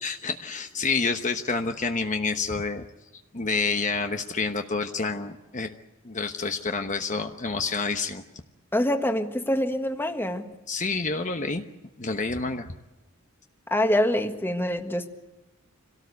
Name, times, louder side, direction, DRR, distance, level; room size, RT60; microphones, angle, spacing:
voice 1, 0.0-2.9 3.3-5.7 6.0-8.2 10.7-11.6 12.0-12.7, left 4 dB, 35° left, 6 dB, 1.1 m, -28 dB
voice 2, 8.7-10.5 13.7-15.1, left 1 dB, 10° left, 6 dB, 1.7 m, -25 dB
27.0 x 18.0 x 8.2 m, 1.1 s
head